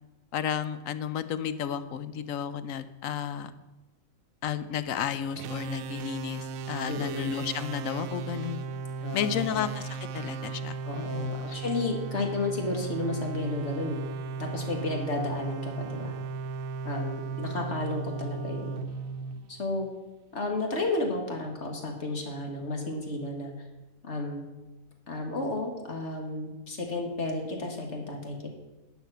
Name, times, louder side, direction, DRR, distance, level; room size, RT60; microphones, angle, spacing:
voice 1, 0.3-3.5 4.4-8.6 9.1-11.3, left 8 dB, 75° left, 13 dB, 1.0 m, -32 dB
sound 1, 5.4-19.9, right 4 dB, 80° right, 1.0 m, -36 dB
voice 2, 6.9-7.3 9.0-9.5 10.8-14.0 14.4-16.1 16.8-18.8 19.5-19.9 20.3-23.7 24.0-24.4 25.1-28.5, left 2 dB, 55° left, 2 dB, 2.0 m, -32 dB
11.5 x 5.0 x 8.0 m, 1.1 s
omnidirectional pair, 1.4 m